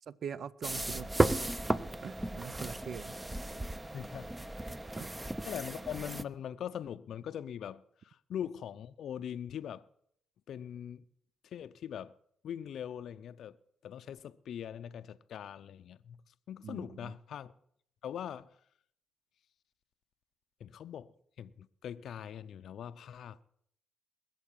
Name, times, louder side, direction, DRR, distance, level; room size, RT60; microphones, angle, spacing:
voice 1, 0.0-1.5 2.0-3.3 5.0-5.1 16.6-17.1, right 7 dB, 55° right, 0.5 m, -43 dB
sound 1, 0.6-6.2, right 2 dB, 15° right, 0.6 m, -34 dB
voice 2, 3.9-4.3 4.9-5.0 5.5-9.9 10.5-11.0 11.4-12.1 12.4-13.6 13.8-16.2 16.5-17.5 18.0-18.6 20.6-23.4, left 9 dB, 65° left, 0.5 m, -42 dB
20.5 x 7.7 x 7.3 m
cardioid pair, 90°, 0 cm